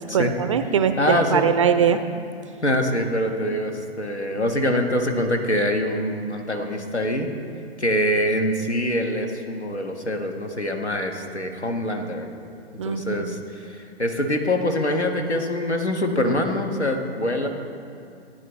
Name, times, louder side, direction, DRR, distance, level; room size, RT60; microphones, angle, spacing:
voice 1, 0.1-2.0 12.8-13.4, right 7 dB, 30° right, 10 dB, 0.4 m, -21 dB
voice 2, 1.0-1.5 2.6-7.3 7.8-12.3 12.8-17.5, left 1 dB, 90° left, 4 dB, 1.3 m, -24 dB
16.5 x 9.4 x 3.1 m, 2.6 s
figure-of-eight pair, 120°, 33 cm